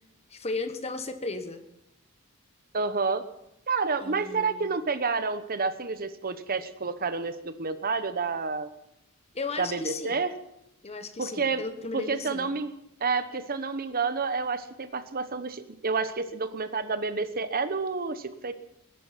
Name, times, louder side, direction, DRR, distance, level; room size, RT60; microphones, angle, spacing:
voice 1, 0.3-1.6 4.0-4.7 9.3-10.2 10.8-12.5, left 3 dB, 30° left, 9 dB, 1.3 m, -35 dB
voice 2, 2.7-3.2 3.7-8.7 9.6-10.3 11.2-11.6 11.9-12.7 13.0-18.5, right 4 dB, 40° right, 11 dB, 1.0 m, -29 dB
20.5 x 11.0 x 5.9 m, 0.82 s
head